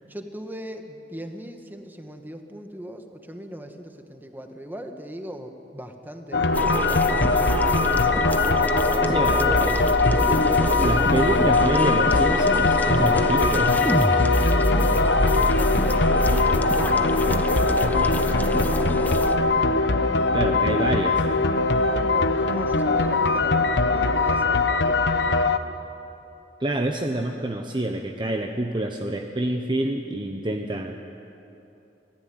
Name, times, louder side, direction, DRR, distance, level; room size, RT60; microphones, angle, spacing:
voice 1, 0.1-6.6 8.9-9.7 10.2-10.8 15.3-18.6 21.8-25.2, equal, 10° right, 5 dB, 1.6 m, -39 dB
sound 1, 6.3-25.6, left 3 dB, 75° left, 1.0 m, -21 dB
sound 2, 6.5-19.4, equal, 10° left, 1.0 m, -26 dB
voice 2, 9.1-9.8 10.8-13.8 20.3-21.2 26.6-31.0, right 1 dB, 30° right, 3 dB, 1.1 m, -27 dB
25.5 x 16.5 x 9.6 m, 2.8 s
head